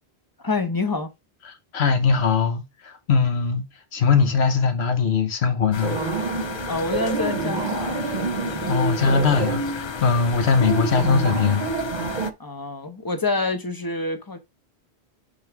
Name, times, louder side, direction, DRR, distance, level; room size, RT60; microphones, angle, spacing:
voice 1, 0.4-1.1 6.7-8.7 12.4-14.4, left 3 dB, 20° left, 0.8 m, -27 dB
voice 2, 1.7-3.6 3.9-6.0 8.7-11.7, left 5 dB, 75° left, 1.3 m, -21 dB
sound 1, 5.7-12.3, left 6 dB, 50° left, 0.3 m, -34 dB
sound 2, 5.8-12.3, right 4 dB, 50° right, 0.9 m, -28 dB
5.5 x 3.8 x 4.6 m
omnidirectional pair, 1.1 m